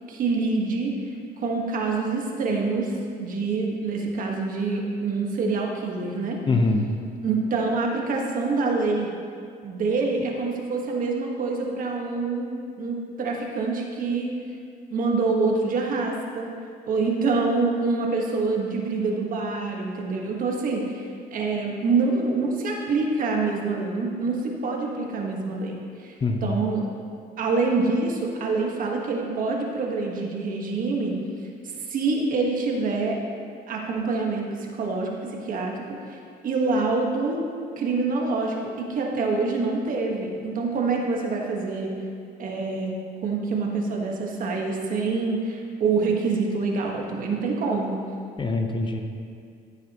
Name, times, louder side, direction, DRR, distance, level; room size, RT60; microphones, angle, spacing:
voice 1, 0.1-0.9 1.4-2.9 3.2-6.4 7.2-9.1 9.6-12.5 12.8-14.3 14.9-16.5 16.8-26.1 26.4-26.9 27.4-31.2 31.9-33.2 33.7-36.0 36.4-37.5 37.8-42.0 42.4-42.9 43.2-48.0, right 3 dB, 55° right, 0 dB, 1.5 m, -26 dB
voice 2, 6.5-6.9 26.2-26.5 48.4-49.0, left 3 dB, 30° left, 4 dB, 0.8 m, -23 dB
15.0 x 7.3 x 3.0 m, 2.3 s
cardioid pair, 110°, 17 cm